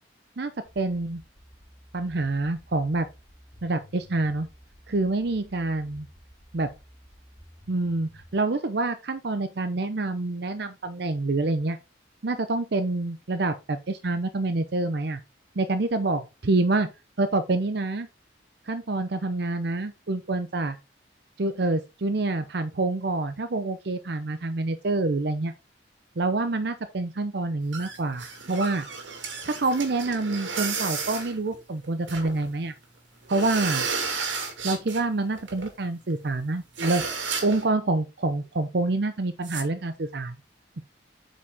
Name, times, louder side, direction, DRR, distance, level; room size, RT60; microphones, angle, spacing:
voice 1, 0.4-1.2 1.9-3.1 3.6-4.5 4.9-6.1 6.5-6.7 7.7-11.8 12.2-15.2 15.6-16.9 17.2-18.1 18.7-20.8 21.4-25.5 26.2-28.9 29.4-32.7 33.3-33.9 34.6-40.3, right 2 dB, 60° right, 0.7 m, -27 dB
sound 1, 0.6-8.3, equal, 25° right, 3.6 m, -53 dB
sound 2, 27.7-32.5 32.8-32.9 33.2-35.1 35.3-35.7 36.1-36.2 36.4-36.5 36.8-37.7 39.4-39.6, right 5 dB, 85° right, 2.4 m, -32 dB
8.3 x 5.1 x 3.5 m
head